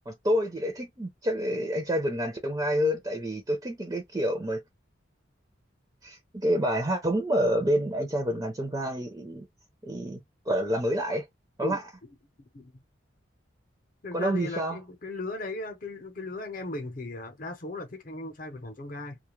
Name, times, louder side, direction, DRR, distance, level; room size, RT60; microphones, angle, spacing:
voice 1, 0.1-4.6 6.0-9.5 9.8-10.2 10.5-11.2 11.6-11.8 14.1-14.8, equal, 20° right, 0.5 m, -28 dB
voice 2, 14.0-19.2, left 2 dB, 45° left, 0.8 m, -37 dB
2.3 x 2.1 x 3.0 m
head